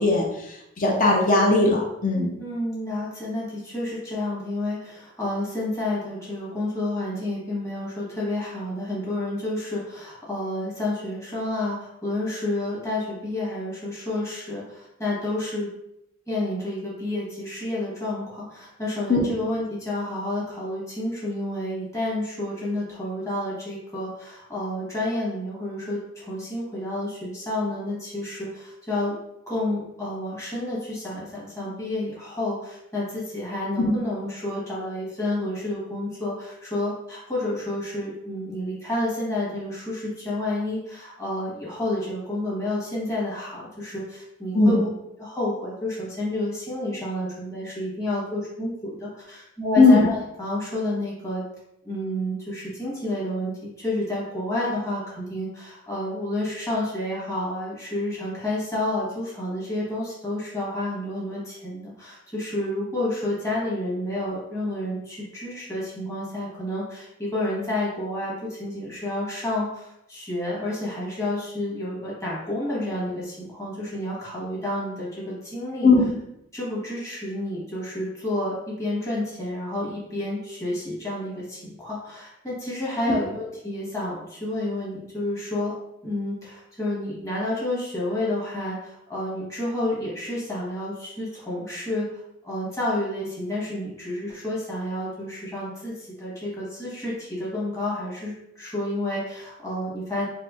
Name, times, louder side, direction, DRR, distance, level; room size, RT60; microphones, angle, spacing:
voice 1, 0.0-2.3 19.1-19.2 33.8-33.9 44.5-44.8 49.8-50.0 75.8-76.0, left 3 dB, 45° left, -2 dB, 0.6 m, -18 dB
voice 2, 2.4-15.7 16.3-29.2 29.5-44.9 45.2-51.4 51.8-75.9 76.5-85.7 86.0-100.2, left 1 dB, 15° left, -7 dB, 1.2 m, -30 dB
4.2 x 2.5 x 2.4 m, 0.82 s
head